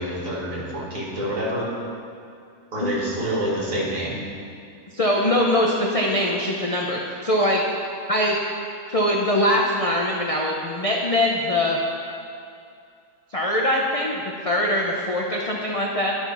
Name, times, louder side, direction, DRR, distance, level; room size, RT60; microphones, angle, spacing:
voice 1, 0.0-1.7 2.7-4.2, equal, 60° right, -5 dB, 2.2 m, -27 dB
voice 2, 4.9-7.6 8.1-8.4 8.9-11.8 13.3-16.1, left 1 dB, 40° left, -2 dB, 0.5 m, -22 dB
11.5 x 4.3 x 5.7 m, 2.4 s
omnidirectional pair, 1.6 m